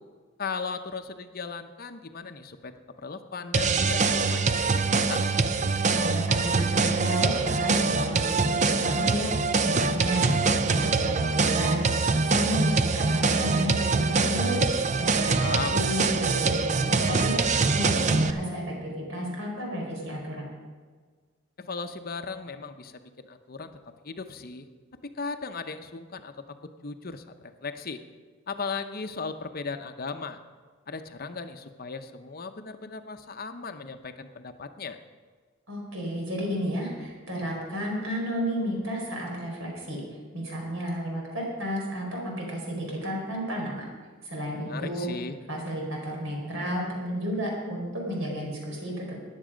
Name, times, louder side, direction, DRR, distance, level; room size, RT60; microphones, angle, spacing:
voice 1, 0.4-2.7 3.0-5.4 15.3-15.8 21.6-23.7 24.0-24.7 25.0-26.4 26.8-28.0 28.5-30.4 30.9-35.0 44.6-45.4, left 4 dB, 45° left, 8 dB, 0.7 m, -37 dB
sound 1, 3.5-18.3, right 4 dB, 35° right, 0.6 m, -24 dB
voice 2, 5.9-10.3 10.6-11.8 12.1-14.6 15.0-20.5 35.7-40.0 40.3-43.9 44.2-45.1 45.5-49.2, equal, 75° right, -1 dB, 4.7 m, -32 dB
15.0 x 10.5 x 5.1 m, 1.5 s
head